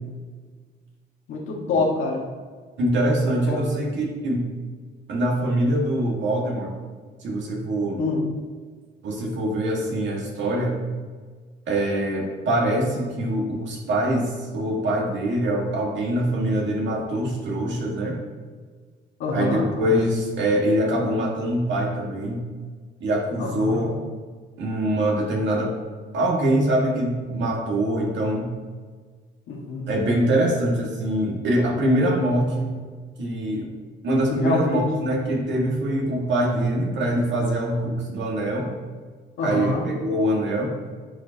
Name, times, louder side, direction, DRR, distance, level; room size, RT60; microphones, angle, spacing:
voice 1, 1.3-2.2 3.5-3.6 8.0-8.2 19.2-19.6 23.4-23.8 29.5-29.9 34.3-34.9 39.4-39.8, left 3 dB, 80° left, -2 dB, 1.7 m, -25 dB
voice 2, 2.8-4.5 5.1-6.7 7.2-8.0 9.0-10.8 11.7-18.2 19.3-22.4 23.0-23.9 24.6-25.8 26.1-28.5 29.9-32.8 33.2-33.7 34.0-38.7 39.4-40.7, right 1 dB, 65° right, -1 dB, 1.9 m, -24 dB
9.7 x 4.9 x 2.9 m, 1.5 s
cardioid pair, 90°, 20 cm